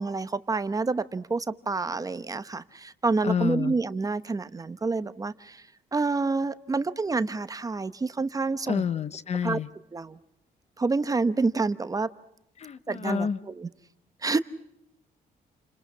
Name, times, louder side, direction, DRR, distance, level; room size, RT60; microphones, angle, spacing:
voice 1, 0.0-5.7 5.9-8.8 9.4-9.6 9.9-10.2 10.8-12.1 12.9-13.7 14.2-14.4, right 3 dB, 25° right, 12 dB, 1.0 m, -28 dB
voice 2, 3.2-3.7 8.7-9.7 12.6-13.4, left 7 dB, 45° left, 15 dB, 0.9 m, -28 dB
30.0 x 27.0 x 5.7 m, 0.80 s
cardioid pair, 125°, 16 cm